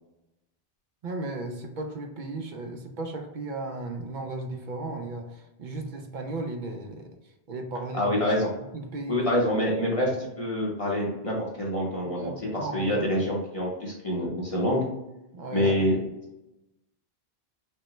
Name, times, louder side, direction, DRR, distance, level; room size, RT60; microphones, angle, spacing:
voice 1, 1.0-7.1 7.5-8.1 8.7-9.2 12.0-13.1 15.3-15.9, right 2 dB, 55° right, 4 dB, 0.7 m, -35 dB
voice 2, 7.9-8.5 9.1-14.8 15.5-16.0, left 1 dB, 35° left, -4 dB, 0.9 m, -26 dB
5.3 x 2.2 x 3.0 m, 0.91 s
omnidirectional pair, 1.1 m